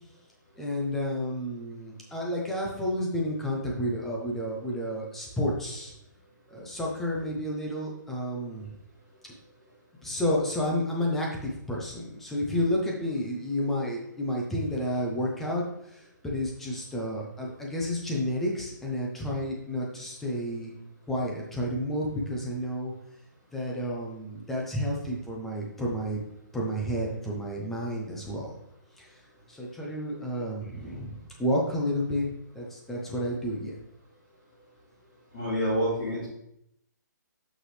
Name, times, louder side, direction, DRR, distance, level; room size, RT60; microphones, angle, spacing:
voice 1, 0.6-5.9 6.5-8.7 10.0-20.7 21.1-22.9 23.5-26.2 26.5-28.6 29.0-29.2 29.5-33.7, equal, ahead, -2 dB, 0.6 m, -31 dB
voice 2, 35.3-36.3, equal, 25° left, -8 dB, 2.4 m, -27 dB
8.1 x 6.0 x 3.2 m, 0.77 s
hypercardioid pair, 175°, 10 cm